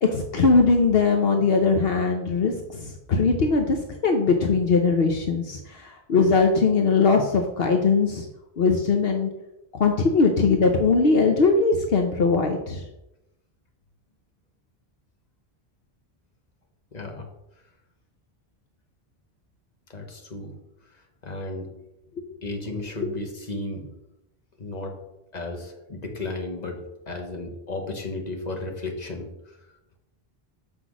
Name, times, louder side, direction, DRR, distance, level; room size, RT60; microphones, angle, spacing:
voice 1, 0.0-8.3 8.6-9.3 9.7-12.8, left 4 dB, 70° left, 3 dB, 1.1 m, -20 dB
voice 2, 16.9-17.3 19.9-20.5 21.2-21.7 22.4-23.9 24.6-24.9 25.3-29.6, left 2 dB, 45° left, 3 dB, 1.4 m, -34 dB
7.0 x 6.0 x 6.1 m, 0.91 s
omnidirectional pair, 1.0 m